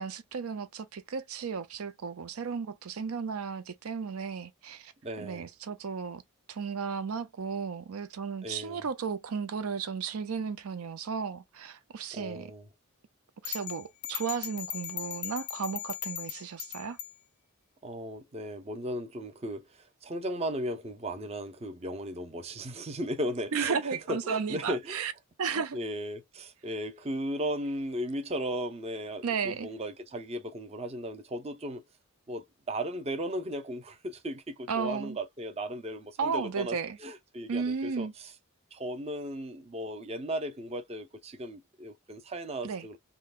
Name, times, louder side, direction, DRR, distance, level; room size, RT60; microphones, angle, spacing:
voice 1, 0.0-4.9 5.2-6.2 6.5-12.5 13.4-17.0 23.5-25.1 25.4-25.8 29.2-29.7 34.7-35.2 36.2-37.0 37.5-38.1 42.6-42.9, right 6 dB, 75° right, 0.5 m, -34 dB
voice 2, 5.0-5.5 8.4-8.8 12.1-12.7 17.8-25.0 25.5-31.8 32.3-38.3 38.7-43.0, equal, 25° right, 0.6 m, -36 dB
sound 1, 13.4-17.1, left 11 dB, 35° left, 0.4 m, -38 dB
3.8 x 2.1 x 2.4 m
head